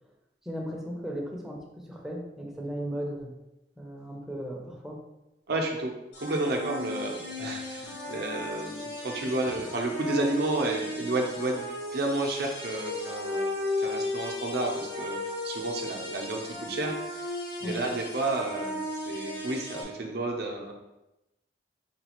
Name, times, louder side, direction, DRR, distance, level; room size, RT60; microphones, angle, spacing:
voice 1, 0.4-3.3 3.8-5.0 17.6-17.8, equal, 5° right, -2 dB, 0.6 m, -36 dB
voice 2, 5.5-13.5 13.8-17.3 17.6-20.7, right 2 dB, 65° right, 1 dB, 0.7 m, -31 dB
sound 1, 6.1-19.8, left 1 dB, 80° left, 1.0 m, -35 dB
5.1 x 2.4 x 2.9 m, 0.94 s
head